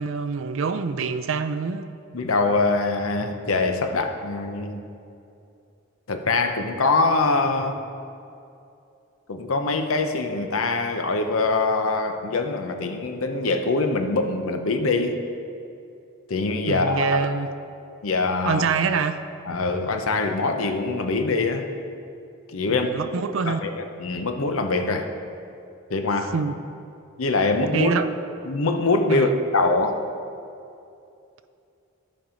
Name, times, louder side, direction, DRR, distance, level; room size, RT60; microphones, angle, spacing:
voice 1, 0.0-1.8 16.7-17.5 18.5-19.2 22.7-23.6 26.3-26.6 27.7-28.1 29.1-29.4, right 5 dB, 65° right, 11 dB, 0.5 m, -25 dB
voice 2, 2.1-4.9 6.1-7.8 9.3-15.2 16.3-17.3 18.0-18.6 19.5-21.7 22.5-22.9 23.5-25.1 25.9-26.3 27.2-27.9 28.4-30.0, left 3 dB, 80° left, 6 dB, 0.8 m, -23 dB
13.0 x 5.5 x 5.0 m, 2.6 s
head